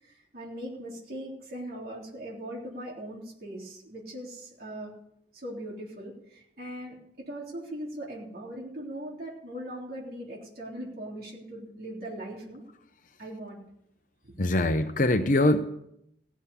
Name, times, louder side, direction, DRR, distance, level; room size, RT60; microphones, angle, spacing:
voice 1, 0.0-4.9 5.3-12.6 13.2-13.6 14.2-14.3, right 1 dB, 55° right, -4 dB, 3.6 m, -40 dB
voice 2, 14.4-15.6, left 1 dB, 45° left, 8 dB, 0.7 m, -23 dB
17.0 x 7.3 x 8.3 m, 0.77 s
head